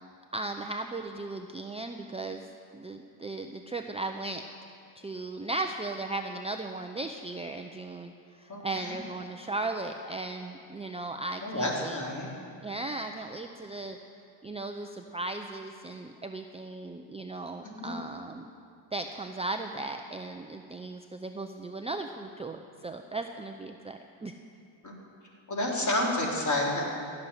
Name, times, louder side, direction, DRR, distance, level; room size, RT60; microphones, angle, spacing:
voice 1, 0.3-2.4 2.7-4.4 5.0-12.0 12.6-14.0 14.4-18.5 18.9-24.4, right 2 dB, 15° right, 5 dB, 0.5 m, -36 dB
voice 2, 8.5-9.0 11.4-12.3 17.6-18.0 24.8-24.9 25.5-26.8, left 1 dB, 35° left, -2 dB, 3.8 m, -30 dB
16.5 x 7.2 x 9.8 m, 2.4 s
cardioid pair, 105°, 49 cm